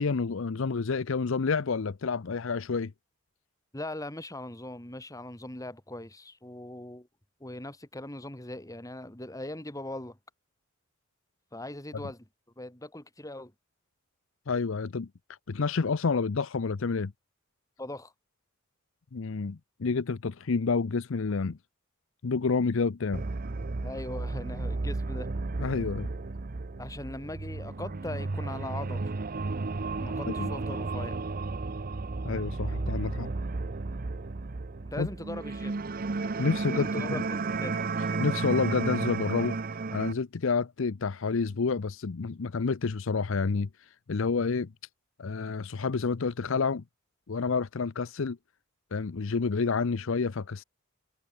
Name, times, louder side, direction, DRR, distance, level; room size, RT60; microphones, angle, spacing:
voice 1, 0.0-2.9 14.5-15.1 15.5-17.1 19.1-21.6 22.2-23.2 25.6-26.1 30.3-30.5 32.2-33.3 35.0-35.1 36.4-37.2 38.2-39.6 39.9-43.7 44.1-44.7 45.2-46.8 47.3-48.4 48.9-50.6, left 4 dB, 70° left, 0.6 m, -29 dB
voice 2, 3.7-7.1 7.4-10.2 11.5-12.2 12.6-13.5 17.8-18.1 23.8-25.3 26.8-29.1 30.0-31.2 34.8-35.8 36.7-37.8, left 1 dB, 15° left, 2.8 m, -40 dB
sound 1, 23.1-40.1, right 3 dB, 45° right, 0.7 m, -33 dB
head